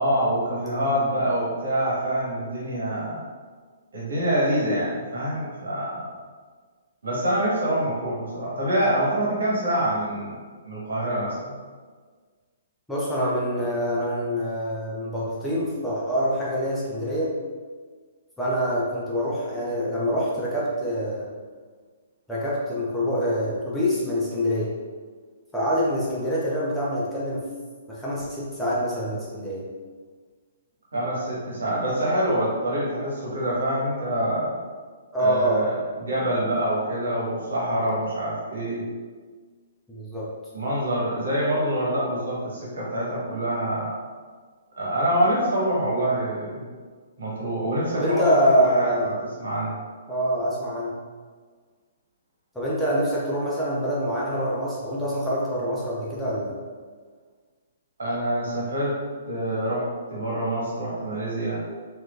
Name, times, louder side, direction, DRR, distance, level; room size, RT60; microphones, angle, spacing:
voice 1, 0.0-3.2 3.9-6.1 7.0-10.4 10.6-11.6 30.9-34.5 35.2-38.8 40.5-43.9 44.8-46.7 47.2-49.1 49.4-49.8 58.0-59.0 59.3-61.6, right 1 dB, 65° right, -6 dB, 1.5 m, -26 dB
voice 2, 12.9-17.3 18.4-21.3 22.3-24.7 25.5-27.5 27.9-29.6 35.1-35.7 39.9-40.3 47.9-49.2 50.1-51.0 52.5-56.6, equal, 5° left, -8 dB, 0.7 m, -25 dB
4.5 x 2.8 x 2.5 m, 1.5 s
figure-of-eight pair, 120°, 0 cm